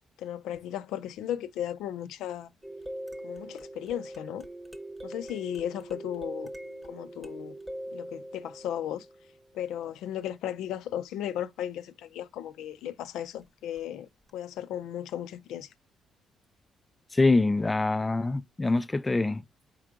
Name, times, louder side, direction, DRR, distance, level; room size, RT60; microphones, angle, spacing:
voice 1, 0.2-2.5 3.2-4.5 5.0-6.5 6.9-7.6 7.9-9.1 9.5-15.7, left 10 dB, 85° left, 0.4 m, -35 dB
sound 1, 2.6-9.5 13.8-13.9 14.3-14.4, right 1 dB, 10° right, 0.9 m, -42 dB
voice 2, 17.1-19.4, left 3 dB, 20° left, 0.3 m, -24 dB
4.6 x 4.6 x 2.4 m
cardioid pair, 90°, 0 cm